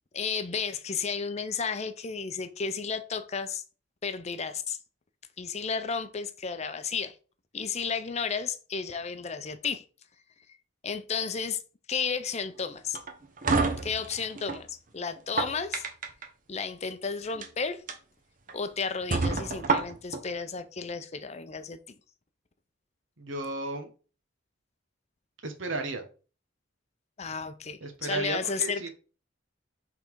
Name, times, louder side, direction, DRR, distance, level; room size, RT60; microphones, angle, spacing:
voice 1, 0.1-3.6 4.0-4.8 5.4-7.2 7.5-9.8 10.8-11.6 11.9-13.0 13.8-15.8 16.5-17.8 18.5-21.8 27.2-28.9, left 5 dB, 35° left, 0.6 m, -33 dB
sound 1, 12.9-14.6 15.2-16.3 17.2-17.5 17.9-18.0 18.5-18.6 19.1-20.2, right 4 dB, 40° right, 0.9 m, -28 dB
voice 2, 23.2-23.9 25.4-26.0 27.8-28.9, right 2 dB, 70° right, 1.1 m, -34 dB
5.6 x 3.8 x 4.6 m
head